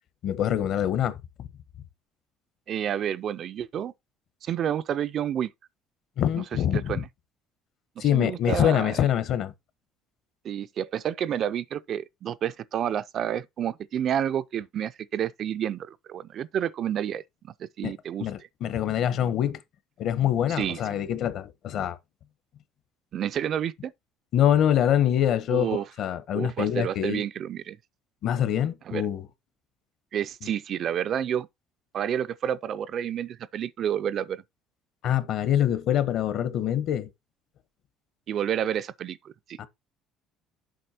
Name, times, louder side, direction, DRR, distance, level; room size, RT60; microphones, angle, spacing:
voice 1, 0.2-1.5 6.2-7.0 8.0-9.5 17.8-17.9 18.2-19.6 20.0-22.0 24.3-27.2 28.2-29.3 30.4-30.5 35.0-37.1 39.6-39.7, left 10 dB, 50° left, 1.0 m, -25 dB
voice 2, 2.7-3.9 4.4-5.5 6.9-7.1 8.0-8.9 10.4-18.3 20.6-20.8 23.1-23.9 25.5-25.9 26.3-27.8 28.9-29.0 30.1-31.5 31.9-34.4 38.3-39.6, right 9 dB, 40° right, 0.4 m, -29 dB
7.8 x 5.6 x 4.3 m
cardioid pair, 165°, 0 cm